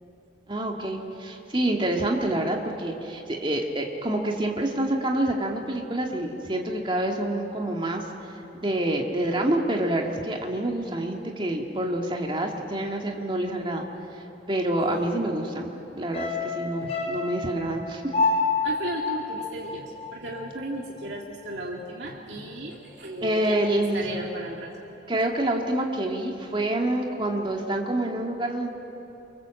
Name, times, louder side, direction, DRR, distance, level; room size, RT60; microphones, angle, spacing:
voice 1, 0.5-8.0 8.5-13.8 14.5-18.0 23.2-24.1 25.1-28.7, right 1 dB, 25° right, 1 dB, 2.0 m, -27 dB
voice 2, 14.9-15.2 16.8-16.9 18.6-24.8, right 1 dB, 70° right, -2 dB, 2.2 m, -35 dB
sound 1, 16.1-20.5 20.8-20.9, left 3 dB, 35° left, 4.5 m, -28 dB
25.5 x 24.5 x 7.7 m, 2.9 s
head